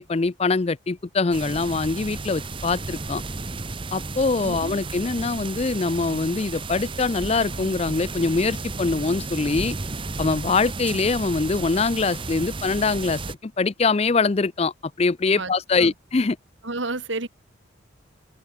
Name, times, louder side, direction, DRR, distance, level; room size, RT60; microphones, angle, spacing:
voice 1, 0.0-3.2 3.9-9.8 10.2-16.4, left 4 dB, 30° left, 0.4 m, -23 dB
sound 1, 1.3-13.3, right 3 dB, 25° right, 0.9 m, -33 dB
voice 2, 15.4-15.9 16.6-17.3, right 2 dB, 65° right, 2.4 m, -31 dB
open air
head